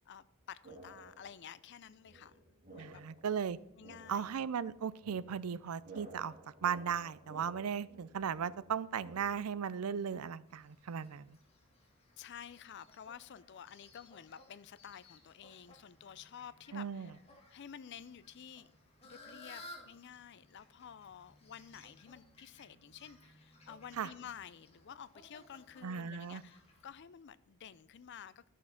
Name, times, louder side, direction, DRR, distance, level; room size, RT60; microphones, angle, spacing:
voice 1, 0.0-3.0 3.8-4.3 12.2-17.1 17.5-18.7 19.0-28.5, left 8 dB, 55° left, 0.4 m, -51 dB
sound 1, 0.6-1.5 2.0-9.3, right 2 dB, 40° right, 3.3 m, -55 dB
voice 2, 2.8-3.6 4.1-6.3 6.6-11.4 16.7-17.1 24.0-24.1 25.8-26.4, right 7 dB, 90° right, 0.5 m, -37 dB
Fowl, 10.5-26.8, left 1 dB, 30° left, 1.8 m, -59 dB
12.0 x 6.4 x 5.8 m
head